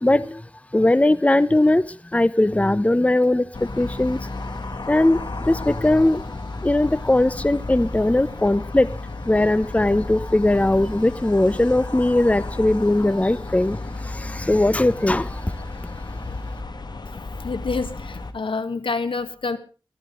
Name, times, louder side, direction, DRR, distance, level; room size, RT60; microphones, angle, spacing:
voice 1, 0.0-4.3 4.9-8.9 9.3-15.6, left 1 dB, 15° left, 0.8 m, -20 dB
sound 1, 3.5-18.3, left 2 dB, 60° left, 2.1 m, -33 dB
voice 2, 17.4-19.6, left 4 dB, 85° left, 1.8 m, -27 dB
23.0 x 15.0 x 3.9 m
wide cardioid pair, 70°, 9 cm